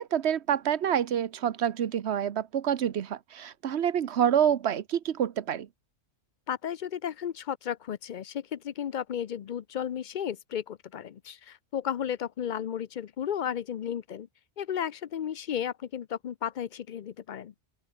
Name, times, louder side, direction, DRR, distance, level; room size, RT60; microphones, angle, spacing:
voice 1, 0.0-5.7, right 9 dB, 65° right, 1.1 m, -27 dB
voice 2, 6.5-14.3 14.6-17.5, left 9 dB, 55° left, 0.6 m, -34 dB
open air
omnidirectional pair, 1.2 m